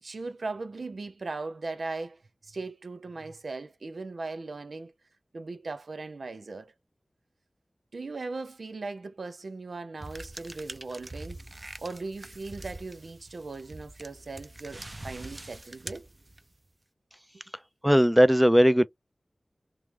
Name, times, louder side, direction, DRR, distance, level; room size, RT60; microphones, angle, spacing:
voice 1, 0.0-4.9 5.3-6.7 7.9-11.4 11.8-16.1, right 3 dB, 85° right, 0.7 m, -38 dB
sound 1, 10.0-16.7, right 2 dB, 35° right, 0.7 m, -44 dB
voice 2, 17.8-18.9, equal, 5° right, 0.4 m, -18 dB
3.2 x 3.1 x 3.4 m
wide cardioid pair, 55°, 0 cm